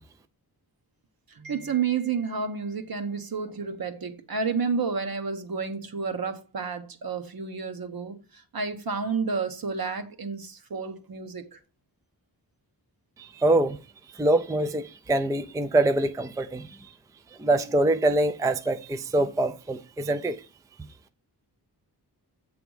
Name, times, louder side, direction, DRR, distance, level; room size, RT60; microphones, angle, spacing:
voice 1, 1.3-11.6, right 5 dB, 60° right, 1.1 m, -30 dB
voice 2, 13.2-13.8 14.1-16.9 17.4-20.4, right 2 dB, 10° right, 0.4 m, -24 dB
8.1 x 3.5 x 6.2 m
wide cardioid pair, 160°, 41 cm